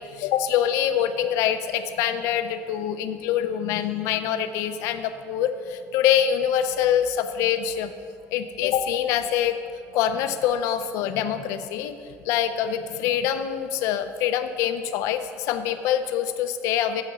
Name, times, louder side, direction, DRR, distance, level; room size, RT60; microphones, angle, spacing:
voice 1, 0.0-7.9 8.3-9.6 9.9-11.9 12.2-17.0, left 9 dB, 85° left, 9 dB, 0.5 m, -25 dB
7.5 x 6.8 x 6.2 m, 2.3 s
cardioid pair, 150°, 5 cm